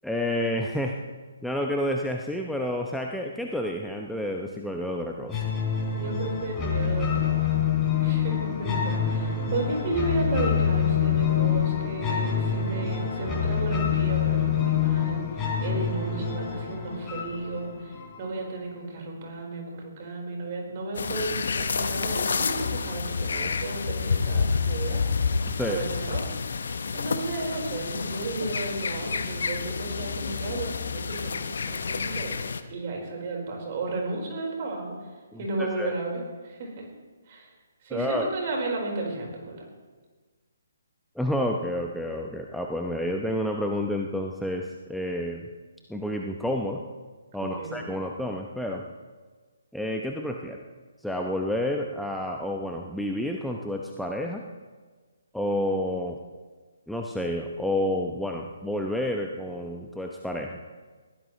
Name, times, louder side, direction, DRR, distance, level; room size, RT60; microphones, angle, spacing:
voice 1, 0.0-1.0 1.4-5.4 25.4-25.8 35.3-35.9 37.9-38.3 41.2-45.5 45.9-46.8 47.3-48.9 49.7-50.6 51.0-54.4 55.3-56.2 56.9-60.6, left 1 dB, ahead, 1 dB, 0.8 m, -30 dB
sound 1, 5.3-18.3, left 8 dB, 15° left, 3.4 m, -26 dB
voice 2, 5.9-7.6 8.0-15.2 15.6-25.0 25.6-32.4 32.7-34.9 35.4-36.9 37.3-37.5 37.8-39.6 47.4-47.8, right 2 dB, 35° right, 0 dB, 4.5 m, -33 dB
sound 2, 20.9-32.6, left 5 dB, 60° left, 0.9 m, -29 dB
21.5 x 15.5 x 3.2 m, 1.4 s
figure-of-eight pair, 135°, 0 cm